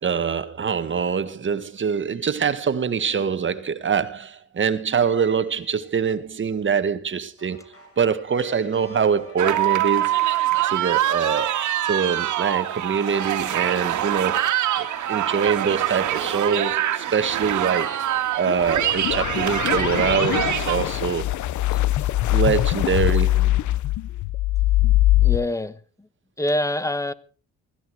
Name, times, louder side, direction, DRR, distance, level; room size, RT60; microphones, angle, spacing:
voice 1, 0.0-7.6 8.0-10.1 10.6-14.4 14.8-17.9 18.3-21.3 22.3-23.6, right 6 dB, 40° right, 1.7 m, -24 dB
sound 1, 7.4-18.2, equal, 50° left, 6.1 m, -48 dB
sound 2, 9.4-20.8, right 12 dB, 75° right, 2.0 m, -24 dB
sound 3, 18.5-25.4, left 15 dB, 75° left, 0.8 m, -22 dB
voice 2, 25.2-25.8 26.4-27.1, left 1 dB, 10° left, 1.1 m, -25 dB
16.5 x 14.5 x 4.8 m
cardioid pair, 90°, 30 cm